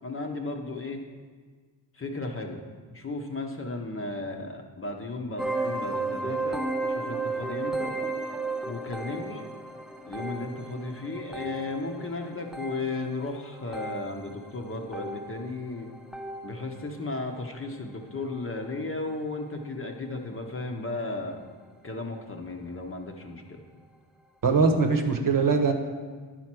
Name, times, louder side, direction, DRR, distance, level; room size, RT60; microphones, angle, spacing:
voice 1, 0.0-1.0 1.9-2.6 2.9-6.6 6.9-7.9 8.6-9.4 10.0-15.9 16.4-21.4 21.8-23.6, left 3 dB, 25° left, 3 dB, 0.9 m, -35 dB
sound 1, 5.4-16.8 17.1-17.5 18.2-18.4 18.7-18.8 19.4-19.5, right 3 dB, ahead, 0.6 m, -34 dB
voice 2, 24.4-25.7, right 4 dB, 45° right, 3 dB, 1.1 m, -22 dB
10.5 x 4.3 x 6.1 m, 1.5 s
cardioid pair, 105°, 47 cm